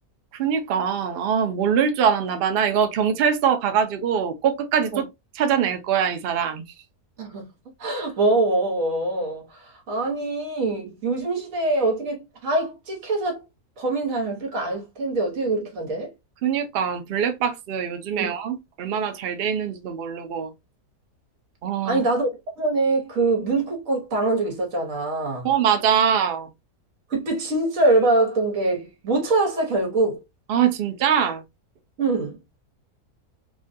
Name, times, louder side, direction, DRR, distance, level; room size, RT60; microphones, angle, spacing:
voice 1, 0.3-5.1 5.3-6.6 16.4-20.5 21.6-22.0 25.4-26.5 30.5-31.4, right 8 dB, 85° right, 0.5 m, -23 dB
voice 2, 7.8-13.4 13.8-16.1 18.2-18.3 21.8-25.5 27.1-30.2 32.0-32.4, right 2 dB, 60° right, 1.4 m, -24 dB
3.2 x 2.2 x 2.5 m
omnidirectional pair, 1.6 m